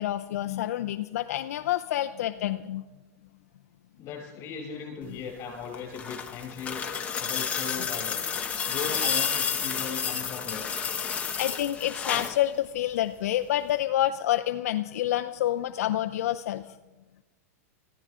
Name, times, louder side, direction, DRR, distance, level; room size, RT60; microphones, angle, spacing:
voice 1, 0.0-2.8 5.1-5.2 11.4-16.6, left 13 dB, 75° left, 7 dB, 0.6 m, -28 dB
voice 2, 4.0-6.9 7.2-8.3 8.7-10.6, left 6 dB, 35° left, 0 dB, 7.3 m, -38 dB
sound 1, 5.6-12.4 13.7-13.8, left 7 dB, 15° left, 1.0 m, -30 dB
22.0 x 15.0 x 3.7 m, 1.1 s
supercardioid pair, 155°, 8 cm